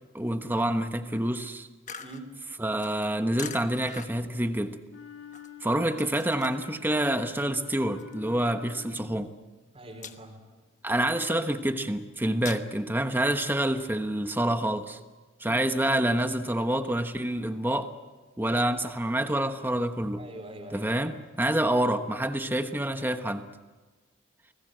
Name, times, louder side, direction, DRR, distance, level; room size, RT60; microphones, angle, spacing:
voice 1, 0.1-1.7 2.6-4.8 5.6-9.3 10.8-15.0 15.4-17.9 18.4-20.2 20.7-23.5, right 1 dB, 10° right, 8 dB, 1.2 m, -27 dB
sound 1, 1.9-6.8 7.1-9.0 9.3-9.6 9.9-10.6 11.0-12.6, left 7 dB, 40° left, 1.2 m, -44 dB
Wind instrument woodwind instrument, 4.8-9.4, left 10 dB, 75° left, 2.3 m, -47 dB
voice 2, 9.7-10.4 15.5-15.7 18.5-18.7 20.2-20.9, right 1 dB, 30° right, 4 dB, 4.2 m, -43 dB
29.5 x 20.0 x 7.8 m, 1.3 s
head